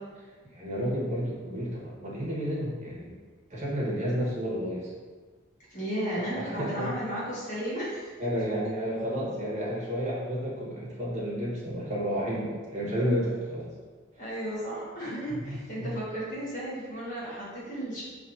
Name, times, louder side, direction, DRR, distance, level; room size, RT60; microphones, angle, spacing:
voice 1, 0.4-3.2 3.5-4.9 6.2-6.9 8.2-13.7 15.3-15.9, equal, 35° right, -7 dB, 1.1 m, -31 dB
voice 2, 5.7-8.4 14.2-18.0, equal, 40° left, -9 dB, 1.5 m, -34 dB
5.6 x 3.1 x 2.6 m, 1.4 s
head